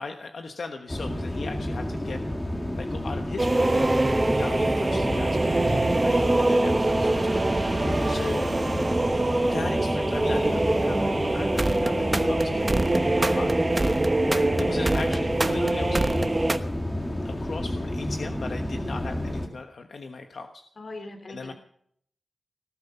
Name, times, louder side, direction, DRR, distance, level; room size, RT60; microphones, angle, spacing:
voice 1, 0.0-2.2 2.8-3.7 4.4-8.5 9.4-12.7 13.0-13.5 14.3-16.0 17.0-20.6 21.3-21.5, left 4 dB, 75° left, 5 dB, 1.2 m, -38 dB
sound 1, 0.9-19.5, left 1 dB, 20° left, 2.0 m, -31 dB
sound 2, 3.4-16.6, right 2 dB, 30° right, 1.1 m, -24 dB
voice 2, 7.9-8.4 13.2-13.5 14.3-14.5 18.8-19.0 20.8-21.5, left 2 dB, 55° left, 7 dB, 2.8 m, -41 dB
19.0 x 12.0 x 5.6 m, 0.65 s
wide cardioid pair, 105°, 0 cm